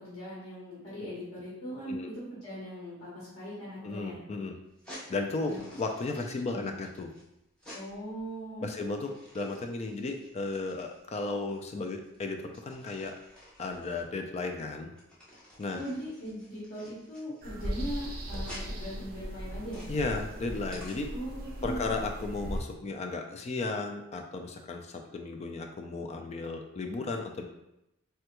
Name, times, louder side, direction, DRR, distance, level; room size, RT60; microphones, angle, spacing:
voice 1, 0.0-4.2 5.5-5.6 6.5-6.7 7.7-8.7 15.7-19.9 21.1-21.9, equal, 90° left, -8 dB, 1.0 m, -40 dB
voice 2, 3.8-4.6 5.1-7.1 8.6-13.1 13.6-14.9 15.6-15.8 19.9-21.1 21.6-27.4, left 3 dB, 30° left, 4 dB, 0.3 m, -34 dB
sound 1, 4.7-21.4, left 1 dB, 5° left, 0.8 m, -52 dB
sound 2, 17.4-22.6, equal, 45° right, 0.5 m, -38 dB
3.3 x 2.2 x 2.9 m, 0.85 s
head